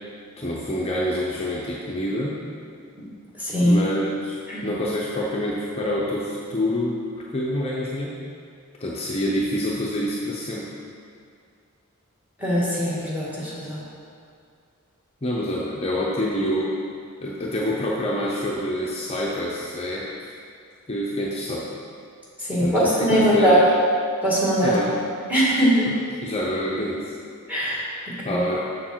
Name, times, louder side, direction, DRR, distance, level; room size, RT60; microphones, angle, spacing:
voice 1, 0.4-2.4 3.6-8.2 8.8-10.7 15.2-16.8 17.2-20.3 20.9-21.7 22.6-23.7 24.6-25.0 25.9-26.0 26.2-27.1 28.2-28.6, left 1 dB, 30° left, -5 dB, 0.7 m, -27 dB
voice 2, 3.4-3.8 4.5-4.7 12.4-13.8 22.5-23.6 24.2-24.8 25.3-25.9 27.5-28.4, equal, 10° right, -7 dB, 1.9 m, -21 dB
6.9 x 6.5 x 4.5 m, 2.4 s
head